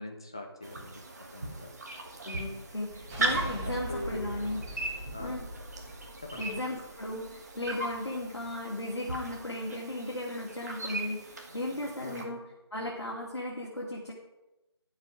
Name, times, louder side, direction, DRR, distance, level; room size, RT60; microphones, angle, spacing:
voice 1, 0.0-1.7 3.6-4.3 5.1-5.5 6.2-6.5 12.0-12.4, left 1 dB, 10° left, 3 dB, 0.5 m, -42 dB
sound 1, 0.6-12.2, right 2 dB, 40° right, 1.6 m, -39 dB
voice 2, 2.2-4.8 5.2-5.5 6.4-12.4 12.7-14.1, left 1 dB, 75° left, -3 dB, 2.4 m, -36 dB
sound 2, 2.8-7.8, right 1 dB, 5° right, 0.9 m, -42 dB
11.5 x 7.3 x 5.0 m, 1.0 s
figure-of-eight pair, 160°, 14 cm